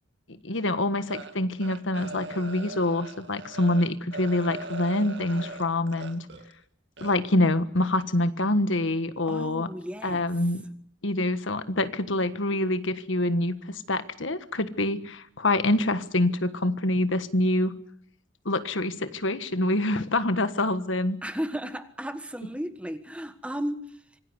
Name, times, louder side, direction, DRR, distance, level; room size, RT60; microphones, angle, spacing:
voice 1, 0.3-6.3 7.0-9.7 10.0-10.6 11.0-17.7 18.4-21.2, left 1 dB, 75° left, 11 dB, 1.5 m, -26 dB
sound 1, 1.1-6.5 7.0-7.2, right 2 dB, 60° right, 2.3 m, -40 dB
voice 2, 9.2-10.3 21.2-24.0, equal, 5° right, 10 dB, 1.4 m, -34 dB
26.0 x 19.0 x 8.1 m, 0.64 s
head